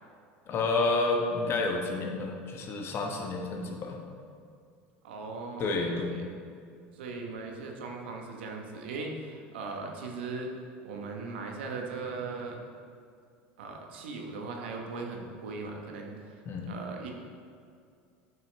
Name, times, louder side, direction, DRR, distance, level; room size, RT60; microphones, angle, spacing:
voice 1, 0.5-4.0 5.6-6.2 16.4-16.7, left 3 dB, 45° left, 2 dB, 1.2 m, -30 dB
voice 2, 5.0-6.2 6.9-10.5 10.8-12.6 13.6-17.1, right 4 dB, 85° right, 1 dB, 1.0 m, -39 dB
9.0 x 5.8 x 3.2 m, 2.3 s
hypercardioid pair, 90°, 6 cm